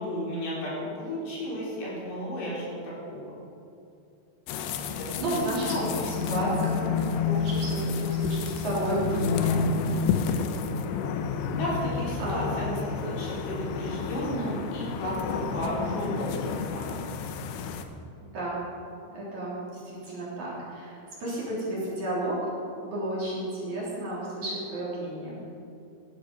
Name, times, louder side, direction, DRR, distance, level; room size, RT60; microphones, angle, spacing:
voice 1, 0.0-3.4 5.0-6.0 11.5-17.1, equal, 65° left, -5 dB, 5.7 m, -33 dB
sound 1, 4.5-17.9, left 5 dB, 85° left, 3.1 m, -30 dB
voice 2, 4.9-9.6 12.2-12.6 18.2-18.6 19.1-22.4 22.8-25.4, right 1 dB, 40° right, -6 dB, 4.4 m, -32 dB
17.0 x 12.0 x 5.4 m, 2.6 s
omnidirectional pair, 5.3 m